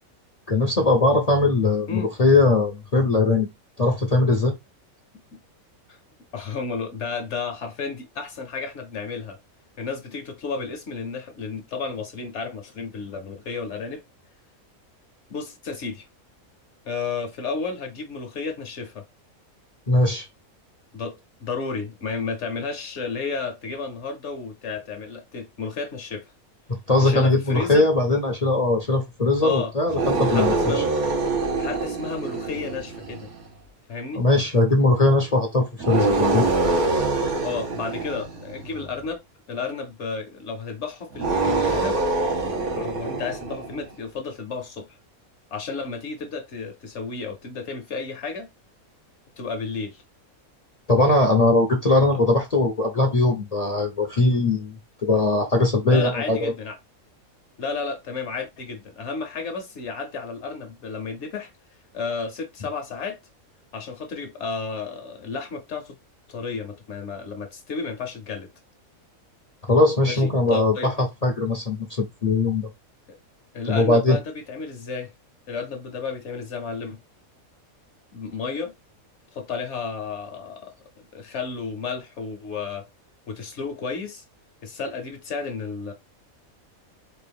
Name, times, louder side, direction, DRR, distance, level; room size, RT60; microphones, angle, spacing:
voice 1, 0.5-3.5 3.8-4.5 19.9-20.3 26.7-30.8 34.1-36.5 50.9-56.5 69.7-72.7 73.7-74.2, left 2 dB, 40° left, 0.5 m, -20 dB
voice 2, 6.3-9.4 9.8-14.0 15.3-16.0 16.8-19.1 20.9-21.1 21.4-26.2 27.0-27.9 29.4-29.7 30.3-31.0 31.6-33.3 33.9-34.2 37.4-39.2 39.5-42.0 42.7-45.0 45.5-48.5 49.4-50.0 55.8-56.8 57.6-61.5 61.9-63.2 63.7-65.9 66.3-68.5 70.0-70.9 73.1-73.2 73.5-75.1 75.5-77.0 78.1-78.7 79.3-80.7 81.1-82.9 83.3-84.2 84.6-85.9, left 4 dB, 60° left, 1.0 m, -32 dB
sound 1, 29.9-33.4 35.8-38.9 41.1-43.9, right 3 dB, 90° right, 1.7 m, -25 dB
4.5 x 2.5 x 3.4 m
omnidirectional pair, 1.5 m